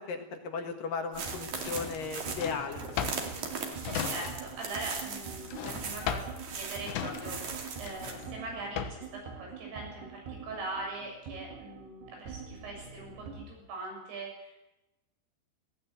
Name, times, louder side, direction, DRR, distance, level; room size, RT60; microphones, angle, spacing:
voice 1, 0.0-3.1, left 5 dB, 60° left, 5 dB, 2.9 m, -36 dB
sound 1, 1.1-8.2, right 5 dB, 45° right, 3.4 m, -39 dB
sound 2, 1.2-13.5, right 5 dB, 70° right, 4.3 m, -45 dB
Drawer open or close, 1.6-4.7 4.9-9.2, left 9 dB, 80° left, 3.5 m, -37 dB
voice 2, 3.9-9.1 9.4-14.5, right 2 dB, 85° right, 0 dB, 9.5 m, -41 dB
19.0 x 17.5 x 9.1 m, 0.97 s
omnidirectional pair, 5.1 m